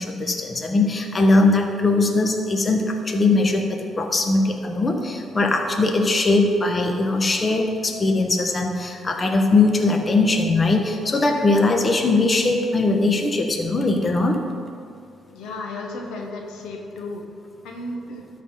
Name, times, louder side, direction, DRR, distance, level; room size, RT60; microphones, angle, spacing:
voice 1, 0.0-14.4, left 2 dB, 30° left, 3 dB, 1.0 m, -20 dB
voice 2, 15.3-17.3 17.6-18.2, left 2 dB, 90° left, 2 dB, 1.1 m, -33 dB
12.5 x 4.3 x 5.5 m, 2.4 s
cardioid pair, 90°, 0 cm